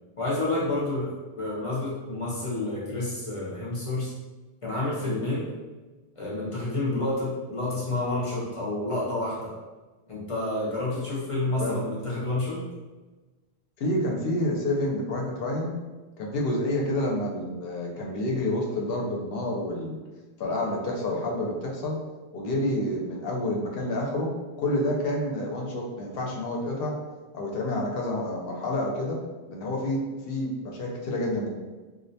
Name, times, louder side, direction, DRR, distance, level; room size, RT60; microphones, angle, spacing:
voice 1, 0.2-4.1 4.6-5.5 6.2-9.5 10.1-12.7, left 2 dB, 35° left, -7 dB, 0.6 m, -29 dB
voice 2, 13.8-15.8 16.2-20.0 20.4-22.0 22.3-24.3 24.6-27.0 27.3-29.2 29.5-31.5, left 1 dB, 70° left, -1 dB, 0.8 m, -28 dB
2.4 x 2.1 x 2.6 m, 1.2 s
omnidirectional pair, 1.1 m